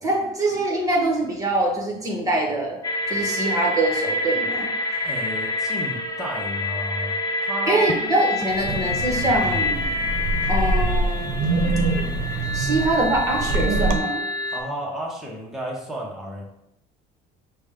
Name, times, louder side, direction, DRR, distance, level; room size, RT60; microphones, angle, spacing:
voice 1, 0.0-2.8 3.1-4.7 7.7-10.1 10.5-11.4 12.5-14.2, right 2 dB, 15° right, 0 dB, 1.2 m, -24 dB
sound 1, 2.8-14.6, left 2 dB, 20° left, 0.4 m, -27 dB
voice 2, 5.0-7.2 7.4-7.9 14.5-16.4, right 1 dB, ahead, -3 dB, 0.8 m, -32 dB
Wind, 8.5-14.0, right 2 dB, 70° right, 0.6 m, -25 dB
6.2 x 2.2 x 3.5 m, 0.83 s
cardioid pair, 125°, 19 cm